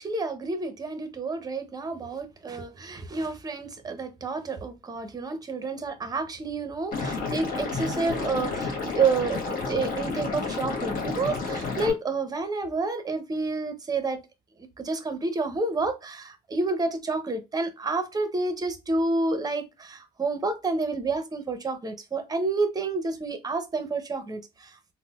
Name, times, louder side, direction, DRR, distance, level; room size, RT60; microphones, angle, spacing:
voice 1, 0.0-14.2 14.8-24.7, right 3 dB, 20° right, 0.7 m, -29 dB
Liquid, 6.9-11.9, left 3 dB, 55° left, 1.3 m, -31 dB
4.0 x 2.1 x 2.3 m
cardioid pair, 110°, 17 cm